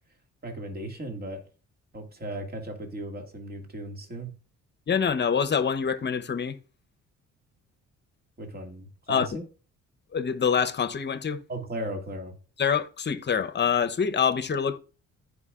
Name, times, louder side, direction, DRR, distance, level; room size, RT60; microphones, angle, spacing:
voice 1, 0.4-1.4 1.9-4.3 8.4-9.4 11.5-12.3, right 1 dB, 30° right, 2.2 m, -36 dB
voice 2, 4.9-6.6 9.1-9.3 10.1-11.4 12.6-14.8, left 7 dB, 35° left, 0.9 m, -25 dB
14.0 x 5.2 x 2.5 m
cardioid pair, 90°, 30 cm